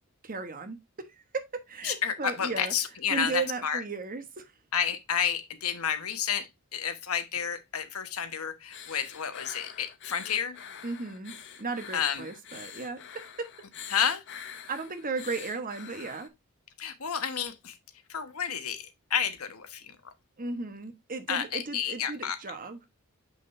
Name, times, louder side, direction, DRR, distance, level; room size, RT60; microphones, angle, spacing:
voice 1, 0.2-0.8 1.1-2.7 3.1-4.5 10.8-13.5 14.7-16.3 20.4-22.8, right 4 dB, 40° right, 1.2 m, -35 dB
voice 2, 1.8-3.8 4.7-10.6 11.9-12.2 13.9-14.2 16.8-17.8 18.1-19.9 21.3-22.4, left 8 dB, 80° left, 1.3 m, -30 dB
sound 1, 8.7-16.3, left 8 dB, 55° left, 1.2 m, -45 dB
7.7 x 6.2 x 2.6 m
head